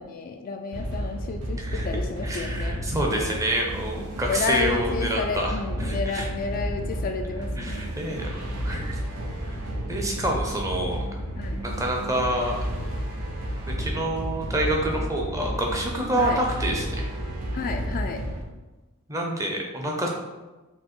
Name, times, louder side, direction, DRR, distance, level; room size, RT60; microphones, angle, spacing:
voice 1, 0.0-2.8 3.1-3.4 4.3-7.8 11.4-11.6 16.2-16.4 17.5-18.2, left 4 dB, 40° left, 4 dB, 0.3 m, -31 dB
sound 1, 0.7-18.4, equal, 85° right, 0.9 m, -31 dB
voice 2, 1.6-1.9 2.2-6.3 7.6-9.0 9.5-9.6 9.9-11.2 11.6-12.7 13.8-17.1 19.1-20.1, right 1 dB, 15° right, 0 dB, 0.7 m, -28 dB
5.2 x 2.2 x 4.3 m, 1.2 s
head